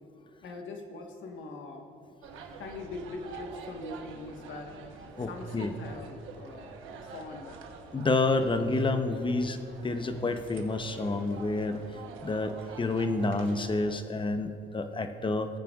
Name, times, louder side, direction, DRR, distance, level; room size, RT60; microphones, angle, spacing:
voice 1, 0.4-1.8 2.6-4.8 5.3-6.7 7.1-7.6, left 3 dB, 75° left, 3 dB, 1.5 m, -42 dB
sound 1, 2.2-13.9, right 5 dB, 85° right, 1.1 m, -47 dB
voice 2, 5.2-5.7 7.9-9.6 9.8-11.8 12.2-15.5, left 3 dB, 25° left, 8 dB, 0.8 m, -29 dB
19.0 x 9.0 x 2.4 m, 2.9 s
cardioid pair, 90°, 20 cm